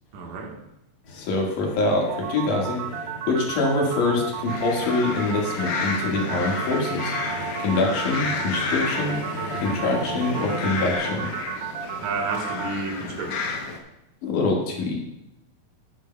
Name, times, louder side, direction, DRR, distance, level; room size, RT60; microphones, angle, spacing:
voice 1, 0.1-0.5 12.0-13.6, right 4 dB, 65° right, 0 dB, 2.6 m, -31 dB
sound 1, 1.0-11.0, left 1 dB, 40° left, 2.1 m, -37 dB
voice 2, 1.1-2.8 3.3-7.1 7.6-9.2 9.6-11.3 14.2-15.0, left 3 dB, 65° left, -1 dB, 3.1 m, -24 dB
sound 2, 2.1-12.7, right 9 dB, 85° right, 2.6 m, -33 dB
sound 3, 4.5-13.8, left 4 dB, 90° left, 1.3 m, -32 dB
11.5 x 9.7 x 2.2 m, 0.87 s
omnidirectional pair, 4.1 m